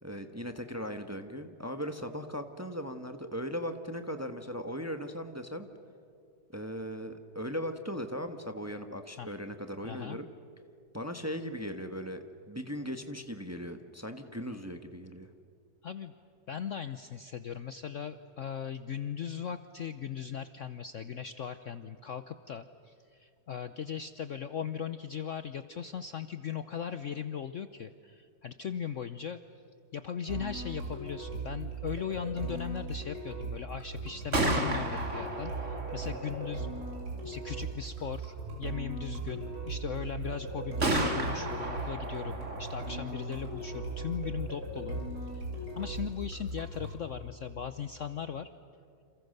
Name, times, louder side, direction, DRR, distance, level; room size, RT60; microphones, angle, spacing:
voice 1, 0.0-5.7 6.5-10.3 10.9-15.3, equal, 10° right, 7 dB, 1.1 m, -38 dB
voice 2, 9.8-10.2 15.8-16.1 16.5-29.4 29.9-36.7 37.2-45.0 45.3-48.5, left 8 dB, 55° left, 11 dB, 0.9 m, -38 dB
sound 1, 30.3-47.0, right 3 dB, 60° right, 6.9 m, -39 dB
Gunshot gunfire, 34.1-47.9, right 2 dB, 40° right, 2.8 m, -37 dB
29.5 x 28.0 x 6.7 m, 2.4 s
omnidirectional pair, 1.9 m